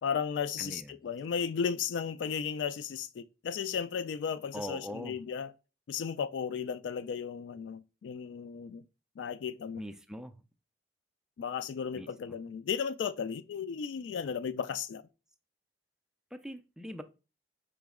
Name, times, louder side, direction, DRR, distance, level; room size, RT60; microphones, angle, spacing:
voice 1, 0.0-5.5 5.9-8.8 9.2-9.8 11.4-15.0, left 7 dB, 90° left, 0.3 m, -35 dB
voice 2, 0.6-0.9 4.5-5.2 9.7-10.4 12.0-12.4 16.3-17.0, equal, 5° right, 0.3 m, -42 dB
5.0 x 3.0 x 3.5 m
head